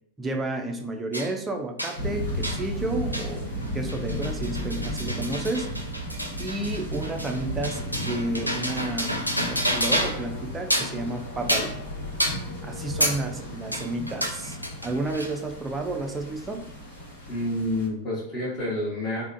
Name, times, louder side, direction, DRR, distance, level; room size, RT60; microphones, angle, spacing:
voice 1, 0.2-3.4 3.7-5.7 6.4-11.7 12.6-16.7, right 2 dB, 15° right, 4 dB, 0.4 m, -31 dB
sound 1, 1.1-1.3 1.8-2.0 2.4-2.6 3.1-3.3 3.6-10.3 10.6-11.0 11.5-11.8 12.2-12.4 13.0-13.2 13.7-15.4, equal, 90° right, 0.4 m, -29 dB
sound 2, 2.0-17.9, equal, 65° left, 1.1 m, -35 dB
voice 2, 17.3-19.2, left 1 dB, 20° left, -10 dB, 1.3 m, -28 dB
3.4 x 2.1 x 2.6 m, 0.75 s
figure-of-eight pair, 90°, 0 cm